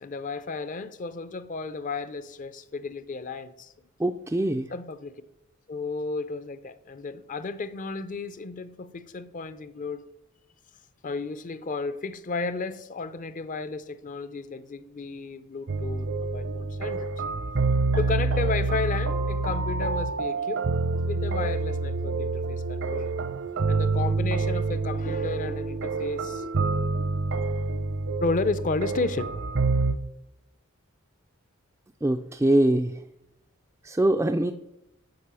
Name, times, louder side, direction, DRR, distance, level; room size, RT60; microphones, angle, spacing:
voice 1, 0.0-3.7 4.7-5.2 5.7-10.0 11.0-17.1 18.0-20.6 21.0-23.2 23.7-26.5 28.2-29.3, left 3 dB, 40° left, 0.5 m, -33 dB
voice 2, 4.0-4.7 32.0-33.0 33.9-34.5, right 1 dB, 10° right, 0.3 m, -23 dB
sound 1, 15.7-29.9, right 3 dB, 65° right, 0.7 m, -27 dB
7.9 x 5.5 x 6.8 m
head